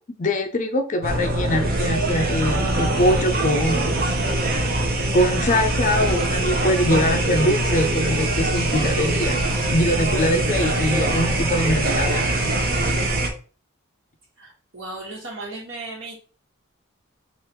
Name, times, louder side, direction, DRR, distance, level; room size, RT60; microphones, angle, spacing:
voice 1, 0.2-4.0 5.1-9.4 9.7-12.2, left 1 dB, 35° left, 7 dB, 0.5 m, -23 dB
sound 1, 1.0-13.3, right 1 dB, 45° right, 0.7 m, -22 dB
voice 2, 14.4-16.2, right 2 dB, 65° right, -3 dB, 1.6 m, -35 dB
3.4 x 2.4 x 4.4 m, 0.38 s
head